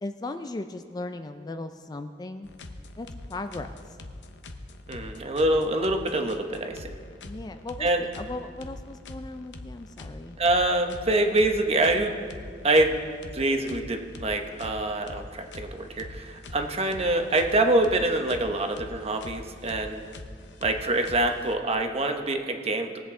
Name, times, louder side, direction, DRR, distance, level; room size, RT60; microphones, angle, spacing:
voice 1, 0.0-2.5 3.0-3.8 7.2-10.4, left 2 dB, 20° left, 8 dB, 0.4 m, -37 dB
sound 1, 2.4-21.9, left 2 dB, 80° left, 0.8 m, -43 dB
voice 2, 4.9-6.9 7.8-8.0 10.4-12.2 12.6-13.0 13.3-20.0 20.6-23.0, right 2 dB, 35° right, 5 dB, 0.9 m, -25 dB
19.5 x 8.1 x 3.7 m, 2.1 s
head